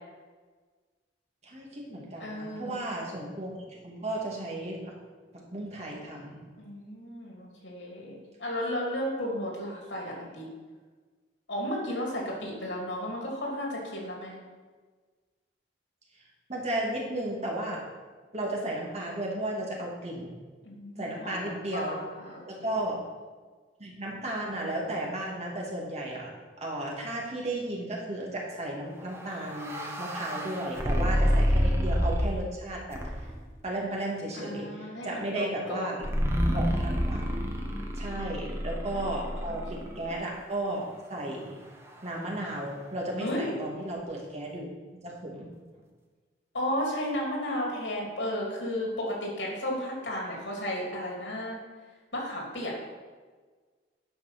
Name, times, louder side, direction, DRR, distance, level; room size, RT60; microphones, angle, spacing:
voice 1, 1.4-4.9 5.3-6.4 16.5-17.8 18.3-20.4 21.0-22.0 22.5-23.0 23.8-26.3 26.6-33.3 33.6-35.9 36.5-37.3 37.9-41.6 42.0-45.5, right 1 dB, 40° right, -3 dB, 2.2 m, -34 dB
voice 2, 2.2-2.8 6.6-10.5 11.5-14.3 20.6-22.8 30.9-31.4 34.3-36.0 37.6-38.2 38.9-39.0 39.5-40.0 43.2-43.5 46.5-51.6 52.1-52.7, equal, 85° left, -2 dB, 3.1 m, -34 dB
sound 1, 29.1-32.5 32.9-33.5 36.0-40.1, equal, 15° right, 1.2 m, -28 dB
9.5 x 6.0 x 6.0 m, 1.4 s
head